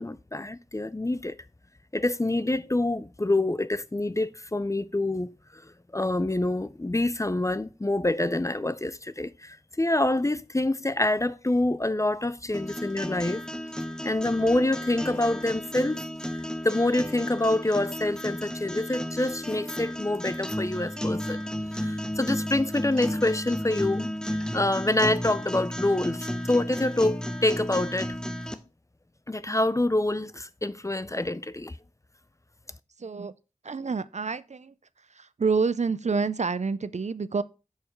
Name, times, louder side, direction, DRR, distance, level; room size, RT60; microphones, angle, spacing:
voice 1, 0.0-1.4 1.9-5.3 5.9-13.4 14.0-16.0 16.3-21.4 21.7-24.1 24.5-28.1 29.3-31.7, left 2 dB, 25° left, 0.4 m, -26 dB
sound 1, 12.5-28.5, equal, 5° left, 0.8 m, -33 dB
voice 2, 33.0-33.3 33.6-34.7 35.1-37.4, right 4 dB, 55° right, 0.4 m, -28 dB
6.5 x 4.6 x 4.5 m
wide cardioid pair, 45°, 14 cm